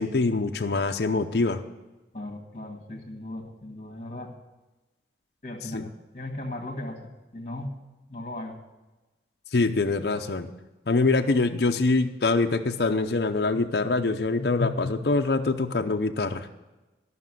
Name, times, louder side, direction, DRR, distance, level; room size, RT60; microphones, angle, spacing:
voice 1, 0.0-1.6 5.7-5.9 9.5-10.5 10.9-16.5, left 3 dB, 60° left, 5 dB, 0.6 m, -24 dB
voice 2, 2.1-4.3 5.4-5.9 6.1-7.7 8.1-8.6, left 1 dB, 35° left, 3 dB, 1.7 m, -37 dB
13.5 x 6.0 x 7.6 m, 1.1 s
head